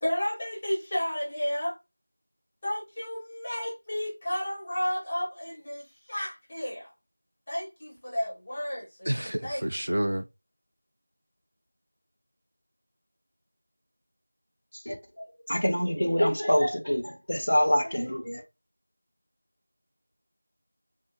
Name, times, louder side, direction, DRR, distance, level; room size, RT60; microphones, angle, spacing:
voice 1, 0.0-1.8 2.6-6.9 7.5-9.1 9.4-9.6, equal, 20° left, 0.9 m, -32 dB
voice 2, 9.1-10.3, right 1 dB, 65° right, 0.3 m, -29 dB
voice 3, 14.9-18.4, equal, 70° left, 0.9 m, -26 dB
2.8 x 2.6 x 2.2 m
figure-of-eight pair, 175°, 0 cm